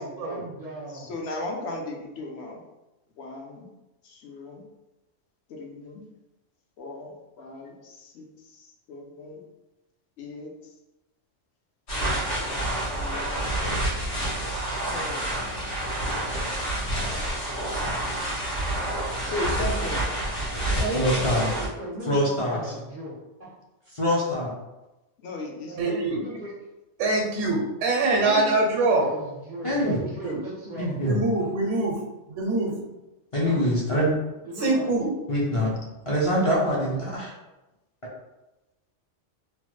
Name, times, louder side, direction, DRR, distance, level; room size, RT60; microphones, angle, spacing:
voice 1, 0.0-1.1 20.8-23.5 25.6-26.5 28.3-31.0 31.4-31.5 33.4-33.6 34.4-34.9, right 1 dB, 55° right, -4 dB, 0.5 m, -36 dB
voice 2, 0.9-2.6 3.2-3.7 4.0-4.6 5.5-6.0 6.8-9.4 10.2-10.5 12.8-13.7 14.9-15.3 19.2-20.1 25.2-25.8, left 2 dB, 65° left, 0 dB, 0.8 m, -36 dB
sound 1, 11.9-21.7, right 1 dB, 85° left, 1.4 m, -28 dB
voice 3, 20.9-21.5 22.1-22.7 23.9-24.5 28.0-28.5 29.6-30.0 30.8-31.2 33.3-34.2 35.3-35.7 36.1-37.3, equal, 40° left, -6 dB, 0.4 m, -24 dB
voice 4, 25.8-26.2 27.0-29.1 30.0-30.4 31.0-32.0 32.4-32.7 34.5-35.1, right 2 dB, 75° right, 0 dB, 0.9 m, -24 dB
3.0 x 2.0 x 3.1 m, 1.0 s
omnidirectional pair, 1.3 m